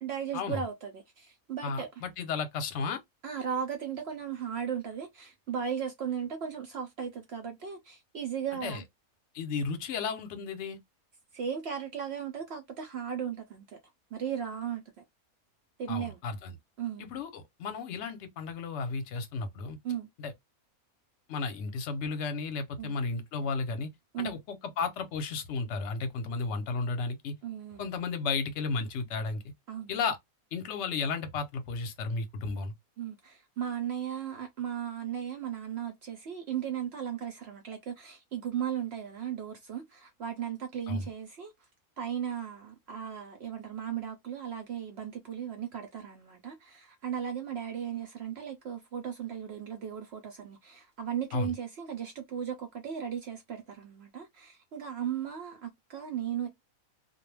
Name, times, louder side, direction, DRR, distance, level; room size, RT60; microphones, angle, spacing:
voice 1, 0.0-1.9 3.2-8.8 11.3-13.8 14.1-14.8 15.8-16.2 16.8-17.1 19.8-20.1 22.8-22.9 24.1-24.3 27.4-27.8 29.7-29.9 33.0-41.5 42.0-56.5, right 8 dB, 65° right, 0.6 m, -36 dB
voice 2, 1.6-3.0 8.6-8.8 9.3-10.8 15.9-16.5 17.0-19.8 20.2-20.3 21.3-23.9 24.2-27.3 27.8-29.4 29.9-30.2 30.5-32.7 40.9-41.1 51.3-51.5, left 4 dB, 60° left, 0.8 m, -33 dB
2.3 x 2.1 x 3.2 m
omnidirectional pair, 1.5 m